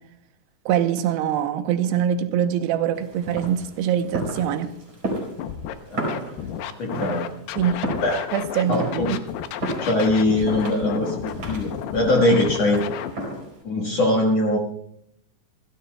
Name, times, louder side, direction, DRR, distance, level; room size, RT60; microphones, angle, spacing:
voice 1, 0.7-4.7 7.6-7.8 8.3-9.2, right 9 dB, 80° right, 2.9 m, -23 dB
sound 1, 3.0-13.6, right 1 dB, 30° right, 5.4 m, -33 dB
Scratching (performance technique), 5.4-5.7 6.1-8.6 8.9-13.1, left 9 dB, 80° left, 2.8 m, -32 dB
voice 2, 5.9-6.2 6.8-7.3 8.0-8.2 8.7-9.1 9.8-12.9 13.6-14.6, left 1 dB, 55° left, 1.9 m, -22 dB
28.5 x 14.5 x 2.3 m
omnidirectional pair, 4.8 m